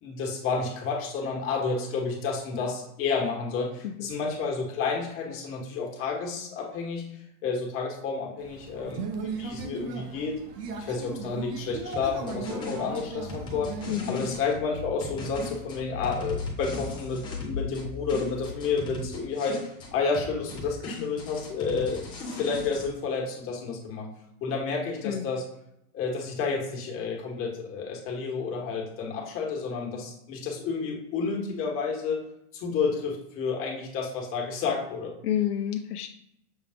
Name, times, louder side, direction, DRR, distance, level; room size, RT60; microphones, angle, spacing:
voice 1, 0.0-7.0 7.4-10.3 10.8-13.7 14.1-24.1 24.4-25.4 25.9-32.2 32.5-35.1, left 5 dB, 30° left, -1 dB, 1.2 m, -30 dB
sound 1, 8.4-14.4, right 4 dB, 80° right, 1.0 m, -37 dB
sound 2, 11.9-14.4 15.0-17.8 18.1-19.9 20.1-22.9, left 2 dB, 10° left, 0.4 m, -39 dB
sound 3, 13.2-18.5, left 6 dB, 90° left, 1.1 m, -39 dB
voice 2, 13.9-14.3 25.0-25.3 35.2-36.1, left 10 dB, 70° left, 5 dB, 0.6 m, -29 dB
6.3 x 2.3 x 3.5 m, 0.79 s
supercardioid pair, 140°, 47 cm